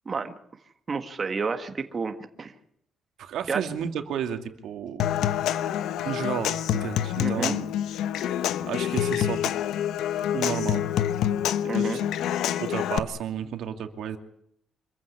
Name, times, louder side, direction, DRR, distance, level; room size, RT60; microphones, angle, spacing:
voice 1, 0.9-2.5 3.5-3.6 7.2-7.5 11.7-12.0, right 4 dB, 30° right, 7 dB, 1.7 m, -30 dB
voice 2, 3.2-5.1 6.0-7.7 8.6-9.5 10.3-10.9 11.6-12.0 12.6-14.2, right 8 dB, 70° right, 7 dB, 2.5 m, -32 dB
Human voice / Acoustic guitar / Percussion, 5.0-13.0, left 10 dB, 85° left, 1.1 m, -27 dB
26.0 x 15.0 x 9.8 m, 0.73 s
cardioid pair, 150°, 0 cm